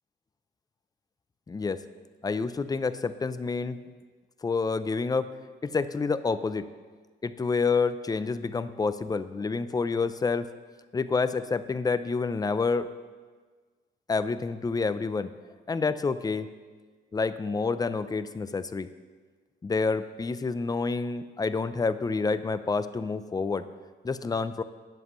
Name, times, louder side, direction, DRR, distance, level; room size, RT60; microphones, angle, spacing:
voice 1, 1.5-1.8 2.2-3.8 4.4-5.3 5.6-6.7 7.2-10.5 10.9-12.9 14.1-15.3 15.7-16.5 17.1-18.9 19.6-23.6 24.0-24.6, left 4 dB, 20° left, 12 dB, 0.5 m, -28 dB
18.0 x 7.3 x 3.1 m, 1.4 s
cardioid pair, 90°, 20 cm